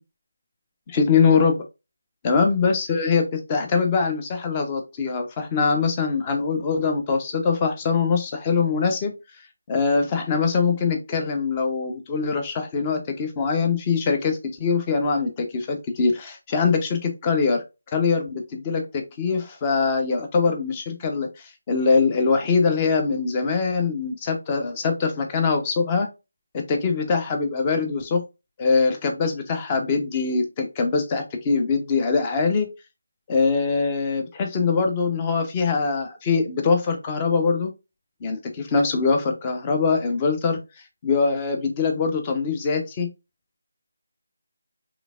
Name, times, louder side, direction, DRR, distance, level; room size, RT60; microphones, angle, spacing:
voice 1, 0.9-1.6 2.2-9.1 9.7-17.6 17.9-26.1 26.5-28.2 28.6-32.7 33.3-37.7 38.2-40.6 41.0-43.1, left 4 dB, 20° left, 4 dB, 0.8 m, -23 dB
4.9 x 3.5 x 2.4 m, 0.27 s
figure-of-eight pair, 160°, 0 cm